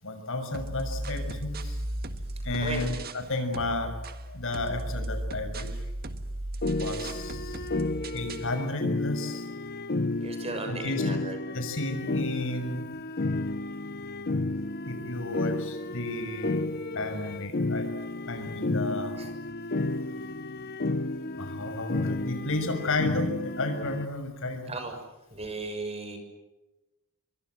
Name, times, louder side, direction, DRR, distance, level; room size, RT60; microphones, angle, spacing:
voice 1, 0.0-1.8 2.4-3.9 4.3-5.7 6.8-7.7 8.1-9.5 10.7-11.1 11.5-12.8 14.8-17.9 18.3-19.2 21.3-24.7, left 2 dB, 60° left, 7 dB, 6.3 m, -32 dB
sound 1, 0.5-3.3 3.5-8.5, right 1 dB, 45° right, 1.7 m, -36 dB
sound 2, 6.6-24.1, left 2 dB, 45° left, 0.9 m, -32 dB
voice 2, 10.2-11.4 15.3-15.4 19.2-19.3 24.7-24.9 25.3-26.2, right 3 dB, 30° right, 6 dB, 6.4 m, -36 dB
29.5 x 24.5 x 7.8 m, 1.0 s
head